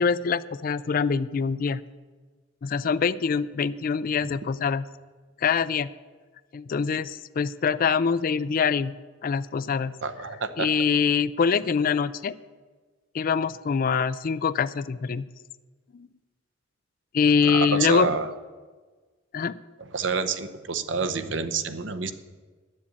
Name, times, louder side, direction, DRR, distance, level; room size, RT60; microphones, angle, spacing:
voice 1, 0.0-1.8 2.6-4.8 5.4-5.9 6.5-8.9 9.2-9.9 10.6-12.3 13.1-15.2 15.9-16.1 17.1-18.1 19.3-19.6, left 6 dB, 45° left, 16 dB, 0.4 m, -24 dB
voice 2, 10.0-10.7 17.4-18.3 19.9-22.1, right 4 dB, 70° right, 11 dB, 0.8 m, -28 dB
10.5 x 7.5 x 8.4 m, 1.4 s
head